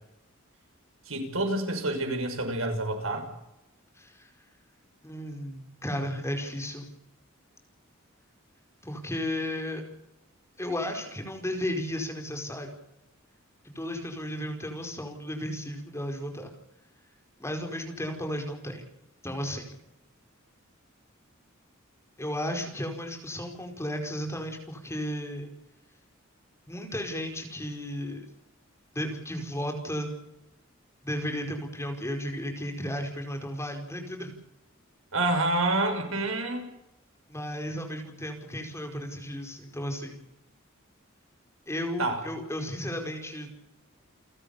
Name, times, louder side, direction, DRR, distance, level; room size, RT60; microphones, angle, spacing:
voice 1, 1.1-3.3 35.1-36.7 42.0-42.2, right 2 dB, 85° right, 5 dB, 6.2 m, -28 dB
voice 2, 4.0-4.3 5.0-6.9 8.8-9.8 10.6-12.7 13.6-16.5 17.4-18.8 19.2-19.6 22.2-25.5 26.7-28.2 28.9-30.1 31.0-34.3 37.3-40.2 41.7-43.5, equal, 15° left, 4 dB, 4.9 m, -34 dB
29.5 x 13.5 x 8.6 m, 0.89 s
head